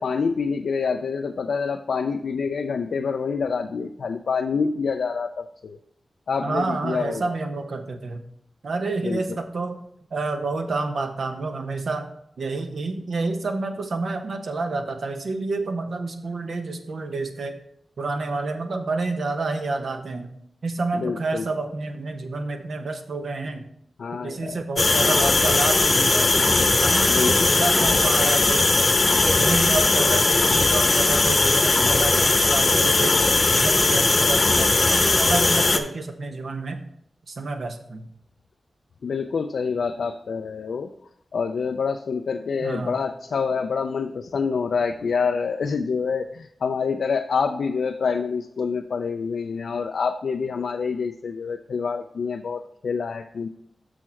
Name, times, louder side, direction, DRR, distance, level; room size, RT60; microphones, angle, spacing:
voice 1, 0.0-5.8 6.3-7.4 9.0-9.4 20.9-21.4 24.0-24.6 27.1-27.5 39.0-40.9 41.3-53.5, left 5 dB, 80° left, 5 dB, 0.3 m, -27 dB
voice 2, 6.4-8.2 8.6-9.8 10.1-12.1 12.4-17.5 18.0-20.3 20.6-23.6 24.1-28.7 29.2-33.2 33.5-36.8 37.3-38.0 42.6-43.0, right 3 dB, 75° right, 6 dB, 0.9 m, -29 dB
sound 1, 24.8-35.8, left 3 dB, 45° left, 0.8 m, -19 dB
6.4 x 6.0 x 4.4 m, 0.71 s
cardioid pair, 45°, 0 cm